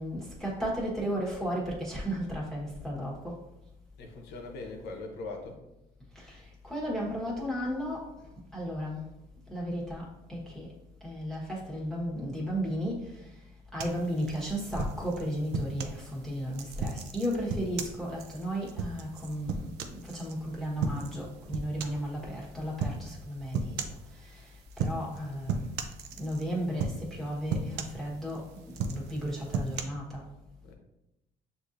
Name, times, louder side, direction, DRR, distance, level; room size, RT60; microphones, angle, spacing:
voice 1, 0.0-3.2 6.1-8.1 8.5-9.1 9.5-10.7 11.0-13.1 13.7-23.8 24.1-25.6 26.2-28.4 28.9-30.2, equal, ahead, -6 dB, 1.2 m, -34 dB
voice 2, 4.0-5.6 30.6-30.7, left 3 dB, 80° left, 2 dB, 0.9 m, -41 dB
sound 1, 13.8-16.0 16.5-20.3 20.8-21.2 21.5-22.1 22.8-23.0 23.5-24.1 24.7-25.2 25.5-26.5 26.8-27.2 27.5-28.4 28.7-29.8, right 4 dB, 80° right, 0.5 m, -35 dB
6.3 x 2.7 x 2.6 m, 0.91 s
cardioid pair, 110°, 17 cm